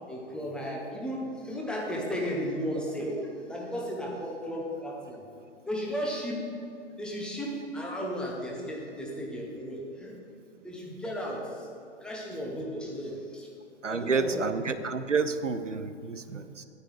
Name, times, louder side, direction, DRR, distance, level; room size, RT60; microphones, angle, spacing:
voice 1, 0.1-3.2 3.5-5.2 5.7-6.4 7.0-10.2 10.6-11.7 12.0-13.5 13.9-14.5 14.8-14.9, equal, ahead, -2 dB, 0.9 m, -34 dB
voice 2, 13.8-16.6, right 5 dB, 90° right, 11 dB, 0.7 m, -30 dB
9.6 x 9.5 x 4.8 m, 2.6 s
figure-of-eight pair, 125°, 36 cm